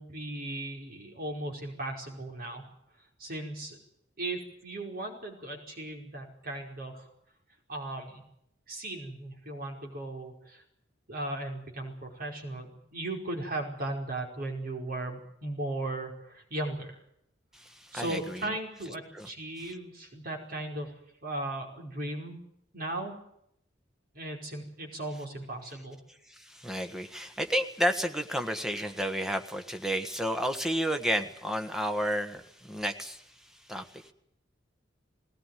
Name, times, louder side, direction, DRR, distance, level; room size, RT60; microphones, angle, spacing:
voice 1, 0.0-2.6 3.2-3.8 4.2-7.0 7.7-8.2 8.7-10.6 11.1-17.0 17.9-20.9 21.2-22.4 22.7-23.2 24.1-26.0, right 1 dB, 50° right, 1 dB, 5.1 m, -37 dB
voice 2, 17.5-18.5 19.1-19.3 19.6-19.7 26.3-33.2 33.7-34.1, equal, 5° right, 6 dB, 1.5 m, -31 dB
20.0 x 18.5 x 9.2 m, 0.75 s
head